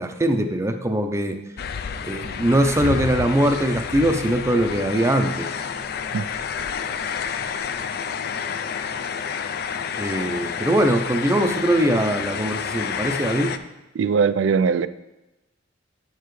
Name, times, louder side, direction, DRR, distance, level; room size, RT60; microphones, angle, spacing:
voice 1, 0.0-1.4 2.1-5.5 10.0-13.5, right 1 dB, 15° right, 6 dB, 0.5 m, -21 dB
sound 1, 1.6-13.6, left 6 dB, 55° left, 0.4 m, -29 dB
voice 2, 14.0-14.9, right 5 dB, 75° right, 15 dB, 0.3 m, -20 dB
9.0 x 6.8 x 3.1 m, 1.0 s
head